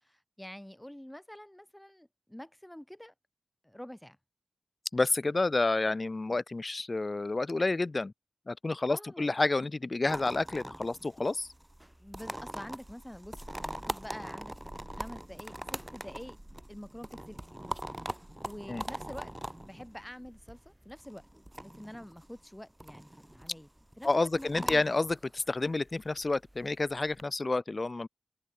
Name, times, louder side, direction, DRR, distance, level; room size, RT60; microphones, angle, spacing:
voice 1, 0.0-3.1 3.6-4.2 8.9-9.3 12.0-14.6 15.0-16.4 16.7-17.6 18.4-19.3 19.6-21.3 21.6-23.7 24.0-24.9, equal, 10° left, 4.0 m, -47 dB
voice 2, 4.9-8.1 8.5-11.5 18.7-18.8 24.0-28.1, left 3 dB, 40° left, 1.9 m, -29 dB
sound 1, 10.1-27.2, right 1 dB, 10° right, 2.0 m, -42 dB
wide cardioid pair, 65°, 0 cm